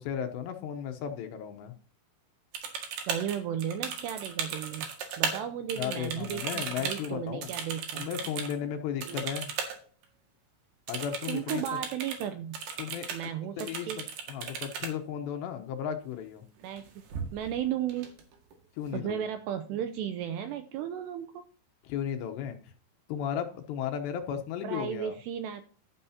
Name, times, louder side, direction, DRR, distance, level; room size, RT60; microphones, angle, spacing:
voice 1, 0.0-1.7 5.8-7.5 8.0-9.5 10.9-11.6 12.8-13.1 13.6-16.4 18.8-19.3 21.8-22.7 23.1-25.2, left 9 dB, 75° left, 6 dB, 2.8 m, -35 dB
sound 1, 2.5-5.4 5.7-8.5 9.0-9.8 10.0-10.1 10.9-12.3 12.5-13.3 13.6-14.9 16.6-16.8 17.1-17.6 17.9-18.5, right 6 dB, 65° right, 3.7 m, -36 dB
voice 2, 3.1-4.9 5.2-8.1 9.1-9.3 11.3-12.6 13.1-14.0 16.6-17.0 17.3-18.1 18.9-21.4 24.6-25.6, right 9 dB, 80° right, 9 dB, 2.5 m, -34 dB
12.0 x 11.0 x 2.8 m, 0.41 s
omnidirectional pair, 5.5 m